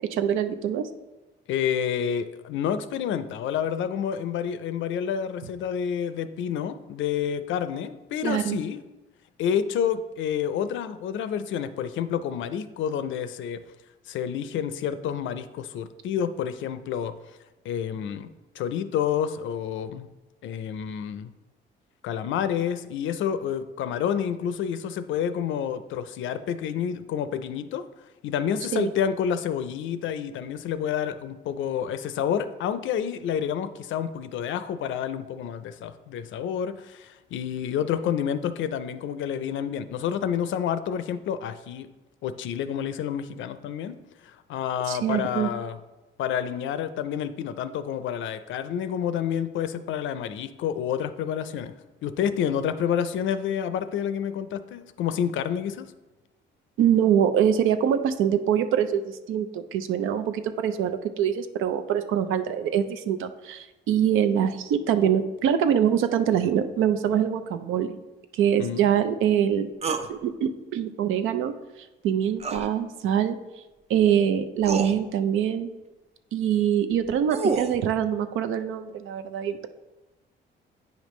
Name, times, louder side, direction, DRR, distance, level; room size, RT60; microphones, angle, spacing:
voice 1, 0.1-0.9 8.2-8.6 28.7-28.9 44.9-45.5 56.8-68.0 68.3-69.7 70.1-71.5 72.0-73.4 73.9-75.7 76.3-79.7, right 9 dB, 85° right, 9 dB, 0.5 m, -24 dB
voice 2, 1.5-8.8 9.4-13.6 14.1-17.2 17.6-18.3 18.6-20.1 20.4-21.3 22.0-27.9 28.2-41.9 42.2-45.8 46.2-51.7 52.0-55.9 68.6-68.9, left 8 dB, 75° left, 12 dB, 0.5 m, -29 dB
sound 1, 69.8-70.1 72.4-72.7 74.0-74.1 74.6-74.9 76.9-77.8, right 4 dB, 35° right, 0.5 m, -28 dB
9.0 x 5.1 x 3.1 m, 1.1 s
cardioid pair, 90°, 20 cm